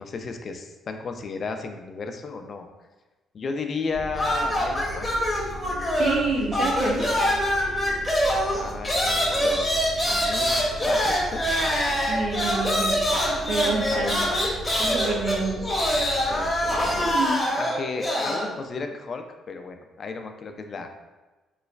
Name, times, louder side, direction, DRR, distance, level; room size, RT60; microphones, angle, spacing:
voice 1, 0.0-2.7 3.3-5.1 7.1-7.6 8.5-11.8 13.9-14.4 16.2-17.3 17.6-20.9, left 4 dB, 50° left, 6 dB, 0.3 m, -34 dB
sound 1, 3.9-17.1, right 1 dB, 45° right, 1.0 m, -38 dB
sound 2, 4.1-6.3 6.5-18.5, equal, 10° left, 0.9 m, -24 dB
voice 2, 6.0-7.1 12.1-13.2 13.5-14.1 14.8-15.5 17.0-17.4, right 3 dB, 65° right, 1 dB, 0.5 m, -27 dB
3.1 x 3.0 x 2.4 m, 1.2 s
cardioid pair, 90°, 0 cm